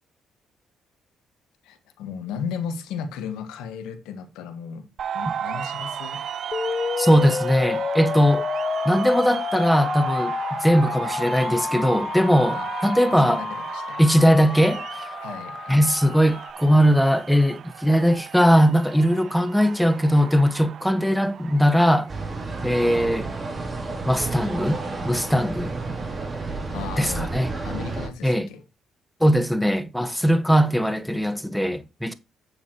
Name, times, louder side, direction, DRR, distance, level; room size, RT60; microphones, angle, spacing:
voice 1, 1.6-4.9 5.1-6.3 12.5-12.7 13.2-13.5 13.7-14.0 15.2-15.7 26.7-27.3 27.6-28.6, left 7 dB, 90° left, 1.6 m, -35 dB
sound 1, 5.0-22.7, right 8 dB, 60° right, 0.6 m, -35 dB
sound 2, 6.5-16.5, left 5 dB, 45° left, 0.6 m, -30 dB
voice 2, 7.0-8.4 8.8-13.4 14.0-14.8 15.7-22.1 22.6-23.3 24.0-24.8 25.0-25.8 27.0-27.5 28.2-28.5 29.2-32.1, equal, ahead, 1.4 m, -20 dB
sound 3, 22.1-28.1, right 3 dB, 35° right, 3.2 m, -31 dB
8.8 x 7.5 x 3.0 m
supercardioid pair, 65°, 0 cm